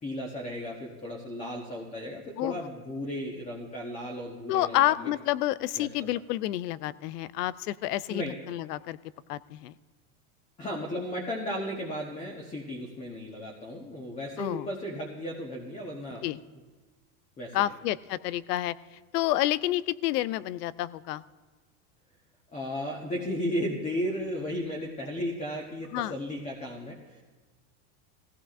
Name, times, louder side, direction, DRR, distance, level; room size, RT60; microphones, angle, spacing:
voice 1, 0.0-5.1 5.8-5.9 8.1-8.4 10.6-16.2 17.4-17.7 22.5-27.2, equal, 15° left, -1 dB, 1.1 m, -35 dB
voice 2, 4.5-9.0 9.3-9.7 14.4-14.7 16.2-16.4 17.5-18.7 19.1-21.2 25.9-26.1, left 14 dB, 90° left, 18 dB, 0.6 m, -29 dB
19.5 x 16.0 x 2.5 m, 1.3 s
supercardioid pair, 140°, 46 cm